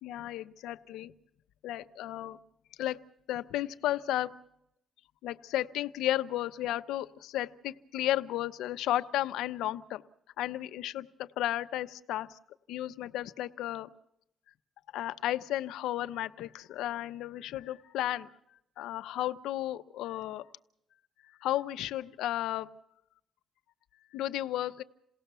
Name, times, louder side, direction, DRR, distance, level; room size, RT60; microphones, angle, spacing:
voice 1, 0.0-1.1 1.6-2.4 2.8-3.0 3.3-4.3 5.2-10.0 10.4-12.4 12.7-13.9 14.9-18.3 18.8-20.5 21.4-22.7 24.1-24.8, left 13 dB, 90° left, 12 dB, 0.8 m, -33 dB
28.0 x 18.0 x 6.9 m, 0.79 s
cardioid pair, 90°, 0 cm